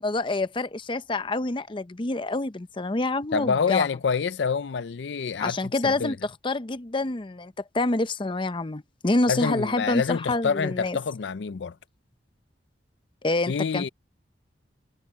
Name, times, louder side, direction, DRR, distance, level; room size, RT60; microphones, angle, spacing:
voice 1, 0.0-3.9 5.4-11.0 13.2-13.9, left 2 dB, 30° left, 0.7 m, -27 dB
voice 2, 3.3-5.6 5.8-6.2 9.3-11.8 13.5-13.9, left 5 dB, 80° left, 0.5 m, -27 dB
head